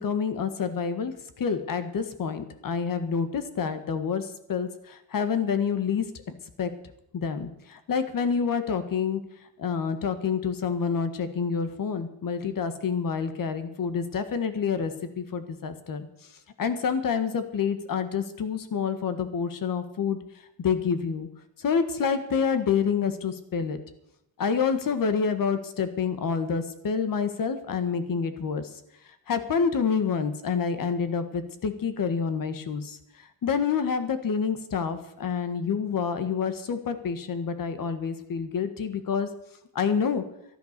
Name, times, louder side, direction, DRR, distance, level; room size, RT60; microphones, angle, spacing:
voice 1, 0.0-6.0 6.6-6.7 7.1-9.2 9.6-16.1 16.6-20.2 20.6-21.3 21.6-23.8 24.4-28.7 29.3-33.0 33.4-39.3 39.7-40.2, left 6 dB, 60° left, 10 dB, 1.5 m, -28 dB
12.5 x 11.5 x 6.7 m, 0.78 s
wide cardioid pair, 150°, 38 cm